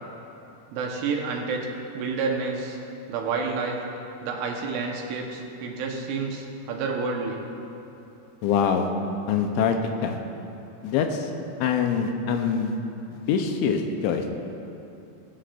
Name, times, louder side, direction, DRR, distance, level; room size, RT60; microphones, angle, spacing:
voice 1, 0.7-1.7 1.9-2.8 3.1-3.8 4.2-7.4, right 4 dB, 80° right, 0 dB, 3.6 m, -29 dB
voice 2, 8.4-8.9 9.3-9.8 10.0-10.2 10.8-11.3 11.6-12.8 13.2-14.4, left 7 dB, 85° left, 4 dB, 3.2 m, -24 dB
21.5 x 11.0 x 2.6 m, 3.0 s
omnidirectional pair, 5.4 m